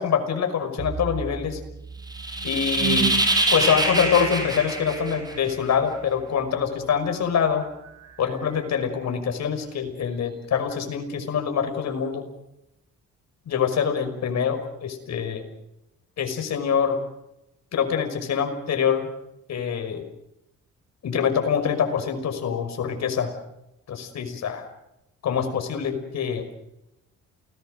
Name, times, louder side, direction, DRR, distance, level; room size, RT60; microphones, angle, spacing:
voice 1, 0.0-1.6 2.4-3.1 3.5-7.6 8.2-12.2 13.5-15.5 16.2-17.0 17.7-19.1 19.5-20.0 21.0-23.3 23.9-24.6 25.2-26.5, left 7 dB, 60° left, 6 dB, 5.7 m, -25 dB
sound 1, 0.8-9.9, right 5 dB, 55° right, 6.0 m, -35 dB
sound 2, 2.1-5.7, right 2 dB, 15° right, 6.0 m, -24 dB
29.0 x 20.0 x 6.6 m, 0.86 s
cardioid pair, 90°, 30 cm